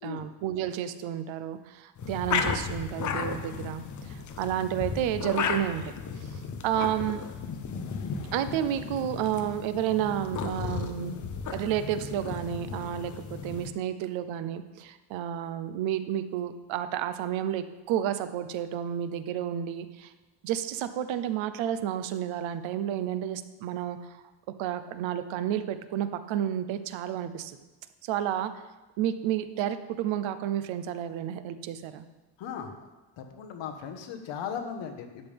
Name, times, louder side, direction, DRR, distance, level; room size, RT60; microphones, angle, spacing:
voice 1, 0.0-5.8 6.2-6.3 6.6-7.2 8.3-11.2 11.5-20.1 20.4-24.2 24.6-27.6 28.0-28.5 29.0-32.1, right 10 dB, 85° right, 11 dB, 0.8 m, -31 dB
sound 1, 2.0-13.7, left 6 dB, 40° left, 0.9 m, -34 dB
voice 2, 32.4-32.7 33.2-35.3, left 7 dB, 70° left, 5 dB, 1.4 m, -37 dB
12.0 x 8.9 x 3.5 m, 1.1 s
cardioid pair, 155°, 45 cm